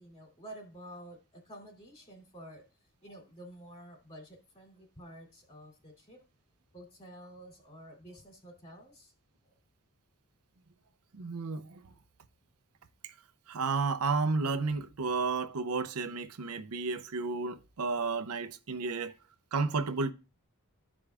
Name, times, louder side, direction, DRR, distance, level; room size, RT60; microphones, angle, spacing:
voice 1, 0.0-2.6 3.0-6.3 6.7-9.1 9.4-9.6, right 1 dB, 30° left, 2.9 m, -50 dB
voice 2, 11.1-11.8 13.0-13.1 13.5-19.1 19.5-20.1, right 4 dB, 80° right, 0.6 m, -32 dB
13.5 x 5.0 x 2.4 m
head